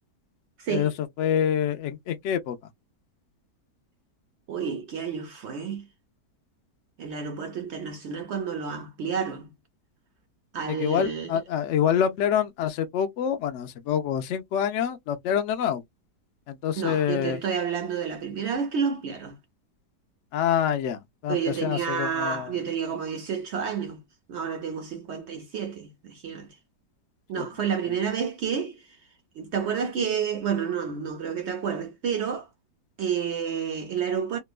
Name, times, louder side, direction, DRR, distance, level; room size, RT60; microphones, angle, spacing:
voice 1, 0.6-0.9 4.5-5.9 7.0-9.5 10.5-11.4 16.8-19.4 21.3-24.0 24.3-26.6 27.3-29.0 29.4-32.5 33.0-34.4, right 7 dB, 75° right, 0.6 m, -30 dB
voice 2, 1.2-2.6 10.7-15.8 16.5-17.4 20.3-22.5 27.3-27.5, left 9 dB, 85° left, 0.6 m, -26 dB
2.9 x 2.2 x 2.3 m
omnidirectional pair, 1.8 m